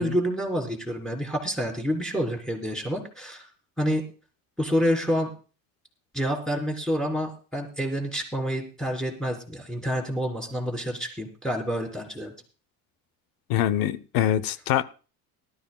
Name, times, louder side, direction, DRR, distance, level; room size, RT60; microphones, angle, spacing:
voice 1, 0.0-3.5 3.8-4.0 4.6-5.3 6.1-12.3, equal, ahead, 3.6 m, -28 dB
voice 2, 13.5-14.8, left 11 dB, 70° left, 0.8 m, -24 dB
19.5 x 12.5 x 2.3 m
cardioid pair, 135°, 35 cm